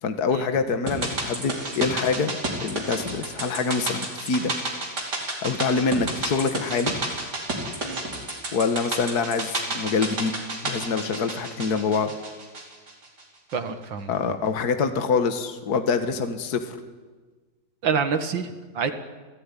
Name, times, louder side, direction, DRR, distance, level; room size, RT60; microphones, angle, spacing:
voice 1, 0.0-4.5 5.4-6.9 8.5-10.4 10.6-12.1 14.1-16.8, left 5 dB, 55° left, 8 dB, 2.0 m, -25 dB
sound 1, 0.9-13.2 13.5-13.6, right 2 dB, 55° right, 5.0 m, -31 dB
voice 2, 13.5-14.1 17.8-18.9, right 6 dB, 75° right, 9 dB, 2.5 m, -27 dB
30.0 x 17.5 x 10.0 m, 1.4 s
omnidirectional pair, 2.1 m